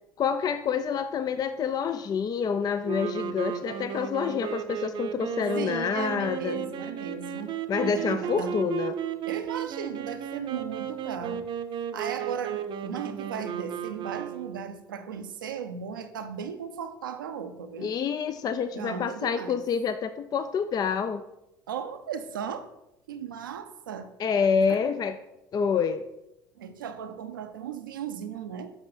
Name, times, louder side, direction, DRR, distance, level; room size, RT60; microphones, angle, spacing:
voice 1, 0.2-6.6 7.7-8.9 17.8-21.2 24.2-25.2 25.5-26.1, left 6 dB, 35° left, 11 dB, 0.5 m, -27 dB
sound 1, 2.8-14.7, right 9 dB, 50° right, 0.7 m, -34 dB
voice 2, 5.5-7.5 7.9-8.6 9.2-11.5 11.9-17.9 18.5-19.6 21.7-22.7 23.1-24.1 24.7-24.8 26.6-28.7, right 7 dB, 80° right, 8 dB, 0.6 m, -36 dB
7.8 x 5.5 x 3.9 m, 0.89 s
figure-of-eight pair, 60°, 11 cm